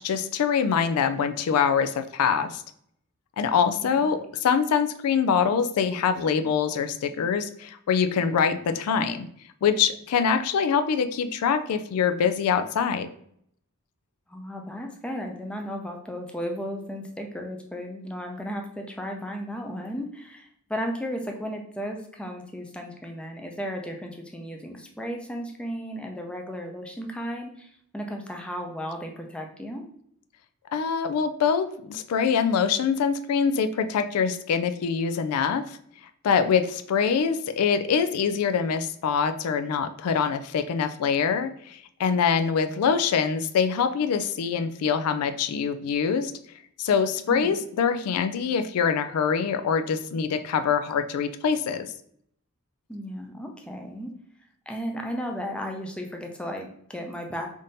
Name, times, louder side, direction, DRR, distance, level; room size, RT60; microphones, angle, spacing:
voice 1, 0.0-2.6 3.4-9.3 9.6-13.1 30.7-35.8 36.2-46.3 46.8-51.9, left 6 dB, 85° left, 9 dB, 0.3 m, -24 dB
voice 2, 14.3-29.8 42.7-43.0 47.3-47.6 52.9-54.1 54.7-57.5, equal, 5° left, 2 dB, 0.4 m, -35 dB
3.6 x 2.6 x 3.9 m, 0.68 s
head